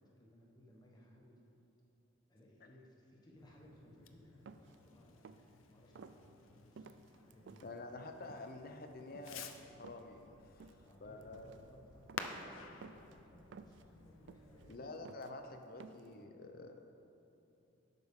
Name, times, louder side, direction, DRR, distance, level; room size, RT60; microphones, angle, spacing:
voice 1, 0.0-1.4 2.3-5.3 5.6-7.8 10.8-15.2, left 1 dB, 20° left, -2 dB, 1.2 m, -62 dB
Fireworks, 3.4-14.8, left 5 dB, 85° left, 0.6 m, -53 dB
sound 1, 4.5-4.8 5.2-5.5 6.0-6.2 6.8-7.7 8.2-8.5 9.0-9.4 9.8-10.2 10.6-11.0 11.2-11.6 12.1-12.4 12.8-13.2 13.5-13.9 14.3-14.8 15.1-15.3 15.8-16.1, right 5 dB, 60° right, 0.3 m, -55 dB
voice 2, 7.6-10.7 11.0-11.5 14.7-16.8, left 2 dB, 45° left, 6 dB, 0.7 m, -49 dB
11.0 x 8.3 x 3.7 m, 2.8 s
head